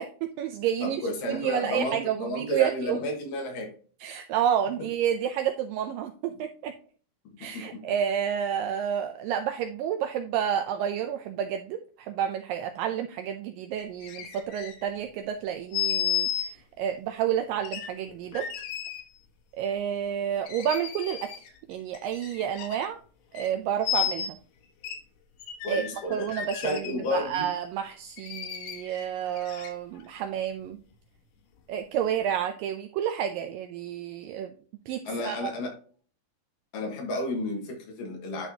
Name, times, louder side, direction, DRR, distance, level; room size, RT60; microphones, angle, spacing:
voice 1, 0.0-1.0 1.3-3.0 4.0-6.7 7.4-18.5 19.6-21.3 21.7-23.0 23.3-24.4 25.7-25.8 26.1-30.8 31.7-34.5 34.9-35.5, right 9 dB, 80° right, 6 dB, 2.1 m, -30 dB
voice 2, 0.8-3.7 7.4-7.8 25.6-26.3 26.5-27.5 35.1-35.7 36.7-38.5, left 1 dB, 70° left, 2 dB, 2.9 m, -32 dB
sound 1, 13.7-15.0 15.7-16.5 17.6-19.0 20.4-21.6 21.9-22.9 23.3-23.5 23.8-24.3 24.8-25.0 25.4-27.1 28.2-30.0 30.6-30.7, left 10 dB, 90° left, 3.0 m, -33 dB
11.0 x 4.3 x 2.8 m, 0.42 s
omnidirectional pair, 4.2 m